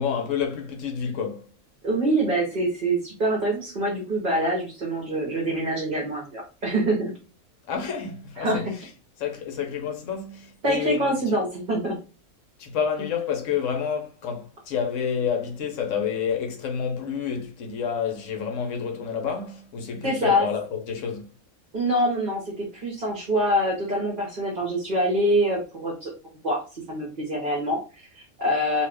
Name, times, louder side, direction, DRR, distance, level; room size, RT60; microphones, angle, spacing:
voice 1, 0.0-1.5 7.7-8.9 9.2-11.2 12.6-21.3, left 7 dB, 70° left, 1.0 m, -29 dB
voice 2, 1.8-7.1 8.4-8.7 10.6-12.0 20.0-20.5 21.7-26.1 26.4-28.9, right 1 dB, 40° right, 0.9 m, -25 dB
2.6 x 2.4 x 3.3 m
omnidirectional pair, 1.5 m